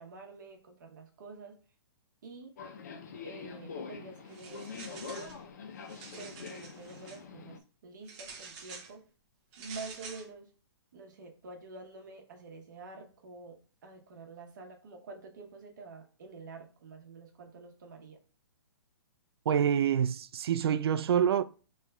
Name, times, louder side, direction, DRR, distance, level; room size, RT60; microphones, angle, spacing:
voice 1, 0.0-1.6 2.2-2.5 3.2-5.3 6.2-9.0 9.6-10.5 10.9-18.2, right 3 dB, 45° right, 1.0 m, -48 dB
Subway metro underground, 2.6-7.6, left 5 dB, 40° left, 0.5 m, -44 dB
sound 1, 4.3-5.4 5.8-7.2 8.1-8.9 9.5-10.3, right 5 dB, 15° right, 0.6 m, -48 dB
voice 2, 19.5-21.4, right 8 dB, 65° right, 0.4 m, -26 dB
5.2 x 3.2 x 2.3 m
hypercardioid pair, 175°, 14 cm